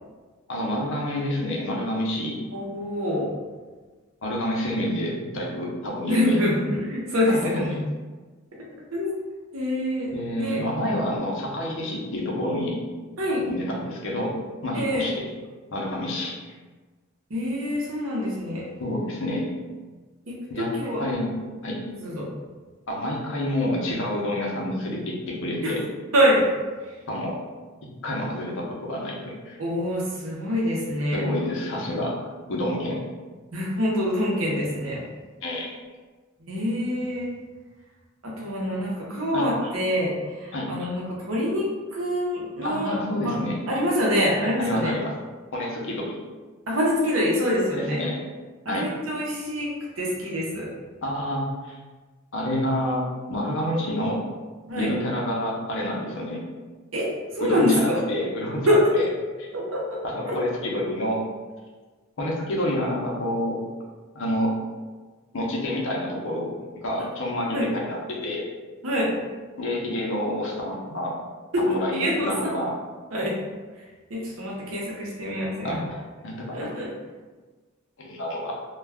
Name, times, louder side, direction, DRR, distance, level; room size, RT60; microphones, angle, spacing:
voice 1, 0.5-2.4 4.2-6.5 7.4-7.7 10.1-12.8 13.5-15.3 15.7-16.4 18.8-19.5 20.5-20.7 21.0-21.3 21.6-21.8 22.9-25.8 27.1-27.4 28.0-29.6 31.1-33.0 35.4-35.7 39.3-39.5 40.5-40.7 42.6-43.6 44.6-45.1 45.5-46.2 47.7-48.2 48.7-48.9 51.0-51.8 52.3-54.2 54.8-56.4 57.4-59.1 59.4-59.5 60.0-61.2 62.2-63.6 64.1-64.5 65.3-68.4 69.6-71.2 71.6-72.7 75.6-76.0 76.2-76.7 78.0-78.7, left 1 dB, 65° left, -2 dB, 0.6 m, -28 dB
voice 2, 2.5-3.3 6.1-7.8 8.9-9.2 9.5-10.6 13.2-13.4 14.7-15.1 17.3-18.7 20.3-21.4 21.9-22.3 25.6-25.7 26.1-26.4 26.8-26.9 29.6-31.2 33.5-35.0 36.4-37.3 38.2-43.4 43.7-45.0 46.7-48.1 48.6-49.7 50.0-50.7 54.7-54.9 56.9-57.1 57.3-58.0 58.7-58.9 59.5-60.0 60.3-60.4 67.5-67.7 68.8-69.1 71.5-71.6 71.9-72.5 73.1-73.3 74.1-75.8 76.5-76.9, equal, 70° right, -4 dB, 0.8 m, -25 dB
2.3 x 2.2 x 3.4 m, 1.3 s
head